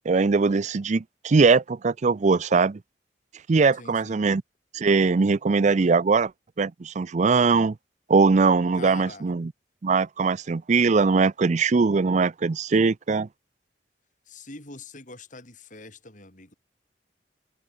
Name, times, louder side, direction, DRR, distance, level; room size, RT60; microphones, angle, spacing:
voice 1, 0.1-2.8 3.5-4.4 4.7-6.3 6.6-7.7 8.1-9.5 9.8-13.3, right 4 dB, 45° right, 0.5 m, -21 dB
voice 2, 3.7-4.2 8.8-9.3 14.3-16.5, left 3 dB, 45° left, 7.7 m, -44 dB
head